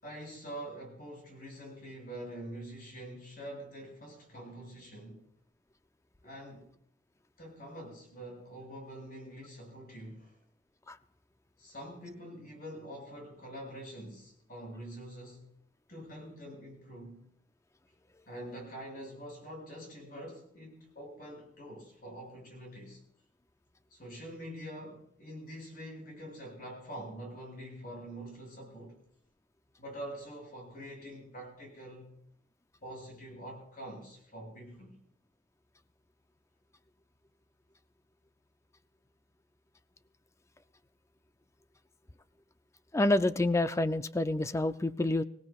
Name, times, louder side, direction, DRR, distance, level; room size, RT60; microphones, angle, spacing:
voice 1, 0.0-5.2 6.2-6.7 7.4-10.4 11.6-15.5 15.9-17.2 18.3-23.0 23.9-29.0 29.8-32.1 32.8-34.9, right 1 dB, 50° left, 6.7 m, -45 dB
voice 2, 42.9-45.2, left 2 dB, 15° left, 0.4 m, -28 dB
25.5 x 16.0 x 2.4 m
head